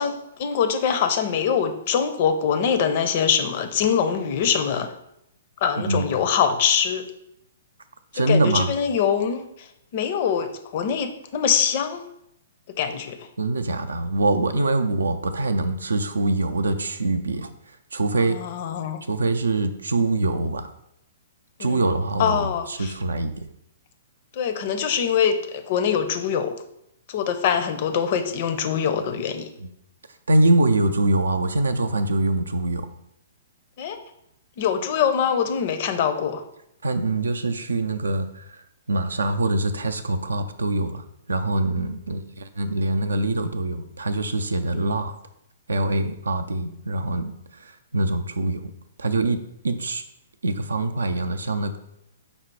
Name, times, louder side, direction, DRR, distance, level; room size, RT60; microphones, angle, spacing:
voice 1, 0.0-4.9 5.6-7.0 8.1-9.7 9.9-12.1 12.8-13.2 18.3-19.0 21.6-21.8 22.2-22.9 24.3-26.6 27.1-29.5 33.8-34.0 34.6-36.4 44.7-45.0, left 7 dB, 50° left, 8 dB, 0.5 m, -23 dB
voice 2, 8.1-8.7 13.4-17.5 17.9-18.4 19.1-20.7 21.6-23.4 29.6-29.7 30.3-32.9 36.8-45.1 45.7-48.6 49.0-50.0 50.4-51.8, right 2 dB, 80° right, 9 dB, 0.4 m, -24 dB
5.3 x 2.0 x 4.6 m, 0.78 s
figure-of-eight pair, 120°, 0 cm